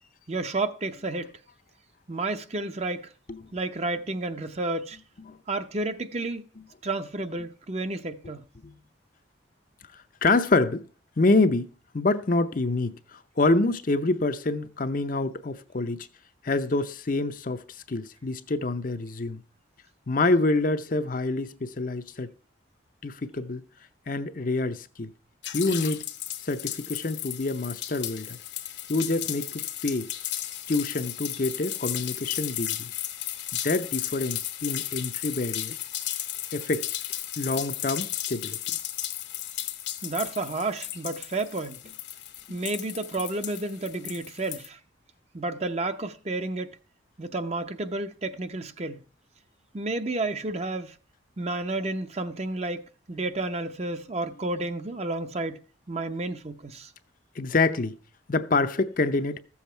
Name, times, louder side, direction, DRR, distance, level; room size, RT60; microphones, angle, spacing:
voice 1, 0.3-1.3 2.1-3.1 3.5-5.0 5.5-6.5 6.8-8.4 40.0-41.8 42.5-44.8 45.3-46.8 47.2-49.0 49.7-51.0 51.4-52.8 53.1-56.9, right 2 dB, 35° right, 0.7 m, -31 dB
voice 2, 10.2-10.8 11.2-11.7 11.9-16.0 16.4-17.6 17.9-19.4 20.1-22.3 23.0-23.6 24.1-25.1 25.5-26.0 26.4-28.4 28.9-30.1 30.7-32.9 33.6-35.8 36.5-37.0 37.4-38.6 42.5-42.6 57.4-57.9 58.3-59.4, left 2 dB, 45° left, 0.6 m, -26 dB
sound 1, 25.4-44.7, left 13 dB, 60° left, 1.0 m, -34 dB
14.5 x 7.2 x 4.4 m
head